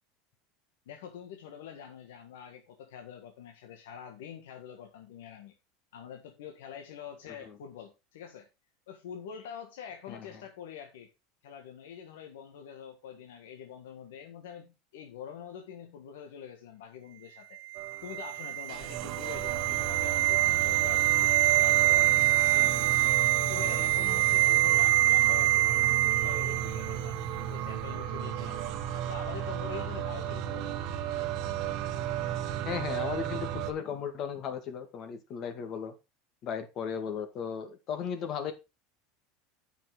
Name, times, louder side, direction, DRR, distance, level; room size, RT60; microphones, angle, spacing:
voice 1, 0.8-5.5 5.9-8.5 8.9-11.1 11.4-17.6 18.0-22.7 23.5-28.6 29.1-30.8, left 8 dB, 90° left, 1.6 m, -45 dB
sound 1, 17.7-27.0 27.2-27.4, right 16 dB, 80° right, 0.4 m, -25 dB
sound 2, 17.8-33.7, right 10 dB, 55° right, 1.3 m, -34 dB
voice 2, 32.7-35.9 36.4-38.5, left 7 dB, 45° left, 2.1 m, -36 dB
9.2 x 6.0 x 5.1 m
supercardioid pair, 130°, 0 cm